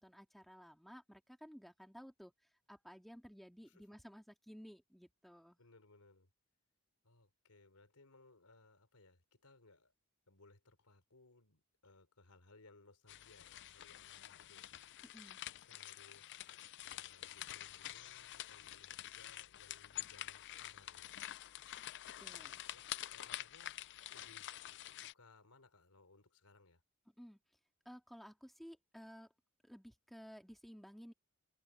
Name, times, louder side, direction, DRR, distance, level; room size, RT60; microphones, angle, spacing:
voice 1, 0.0-2.3 2.7-5.6 15.0-15.4 22.2-22.6 27.2-27.4 27.9-29.3 29.6-31.1, equal, ahead, 2.1 m, -55 dB
voice 2, 5.6-6.3 7.0-9.9 10.3-15.1 15.7-16.5 16.8-21.3 22.3-23.8 24.1-26.8, left 2 dB, 80° left, 3.7 m, -65 dB
sound 1, 13.1-25.1, left 13 dB, 50° left, 0.4 m, -48 dB
head